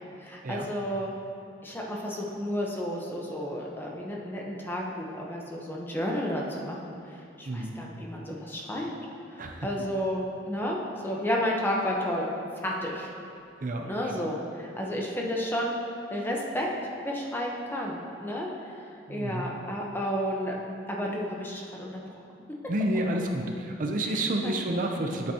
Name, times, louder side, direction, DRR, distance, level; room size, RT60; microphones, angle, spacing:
voice 1, 0.2-1.1 1.6-6.9 7.4-8.9 9.3-10.8 11.0-12.3 12.6-13.1 13.8-15.8 16.1-16.7 17.0-18.8 19.1-20.5 20.9-22.2 24.0-24.6, equal, 10° left, -2 dB, 0.9 m, -32 dB
voice 2, 7.5-7.8 9.4-9.7 13.6-13.9 19.1-19.5 22.7-25.3, right 1 dB, 45° right, 3 dB, 0.6 m, -30 dB
10.5 x 7.9 x 2.8 m, 2.6 s
head